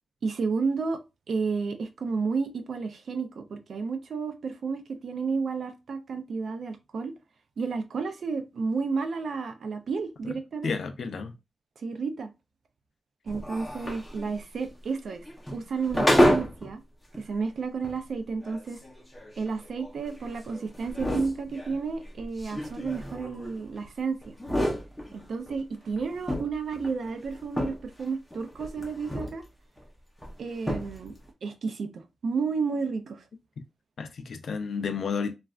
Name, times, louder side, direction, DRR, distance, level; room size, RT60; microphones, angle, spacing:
voice 1, 0.2-1.0 1.3-7.1 7.6-10.7 11.8-12.3 13.2-15.2 15.5-16.8 17.2-18.8 19.4-24.4 25.1-29.4 30.4-31.1 31.4-33.2, right 4 dB, 65° right, 0.5 m, -31 dB
voice 2, 10.6-11.3 34.0-35.3, left 5 dB, 65° left, 0.4 m, -31 dB
sound 1, 13.3-16.7 17.1-17.2 17.8-17.9 18.4-23.9 24.2-25.6 26.0-28.0 28.3-29.4 29.8-29.9 30.2-30.3 30.6-31.1, equal, 5° left, 0.8 m, -29 dB
3.2 x 2.4 x 2.4 m
wide cardioid pair, 135°, 0 cm